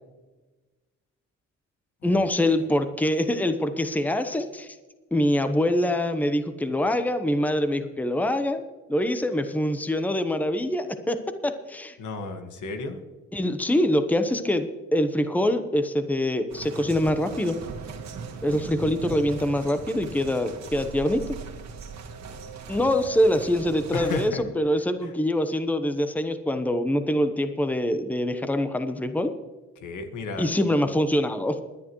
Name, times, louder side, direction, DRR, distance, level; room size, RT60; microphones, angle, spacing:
voice 1, 2.0-4.8 5.1-8.6 8.9-12.0 13.3-17.6 18.4-21.4 22.7-29.3 30.4-31.6, left 1 dB, 5° left, 9 dB, 0.9 m, -24 dB
voice 2, 12.0-13.0 23.9-24.4 25.0-25.1 29.8-30.5, left 3 dB, 80° left, 6 dB, 1.7 m, -33 dB
sound 1, 16.5-24.3, right 5 dB, 65° right, 1.8 m, -39 dB
22.5 x 10.0 x 3.1 m, 1.2 s
cardioid pair, 90°, 30 cm